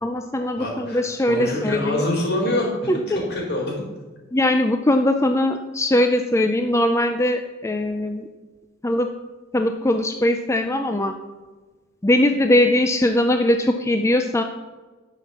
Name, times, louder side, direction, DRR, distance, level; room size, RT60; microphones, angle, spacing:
voice 1, 0.0-2.0 2.9-3.2 4.3-8.3 8.8-9.1 9.5-11.1 12.0-14.4, left 1 dB, 15° left, 6 dB, 0.5 m, -20 dB
voice 2, 0.6-2.7 3.2-3.7, left 1 dB, 55° left, -2 dB, 3.9 m, -25 dB
11.0 x 5.9 x 7.2 m, 1.3 s
head